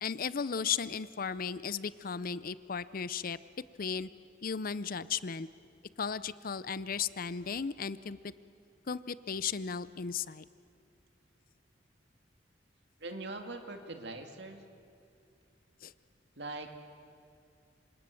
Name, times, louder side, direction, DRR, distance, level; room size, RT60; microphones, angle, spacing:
voice 1, 0.0-3.4 3.8-4.1 4.4-5.5 6.0-8.2 8.9-10.4 15.8-15.9, left 6 dB, 50° left, 16 dB, 0.6 m, -35 dB
voice 2, 13.0-14.6 16.4-16.7, right 2 dB, 65° right, 5 dB, 2.3 m, -42 dB
27.0 x 25.5 x 7.7 m, 2.4 s
head